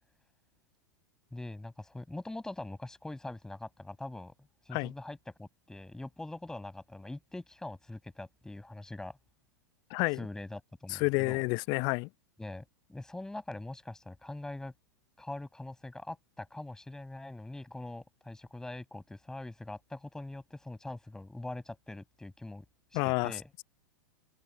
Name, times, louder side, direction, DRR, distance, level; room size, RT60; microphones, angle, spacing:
voice 1, 1.3-4.3 4.7-9.2 10.1-11.4 12.4-14.7 15.2-22.6 22.9-23.5, left 2 dB, 5° left, 6.2 m, -43 dB
voice 2, 10.9-12.1 22.9-23.3, left 29 dB, 40° left, 0.5 m, -29 dB
figure-of-eight pair, 90°, 11 cm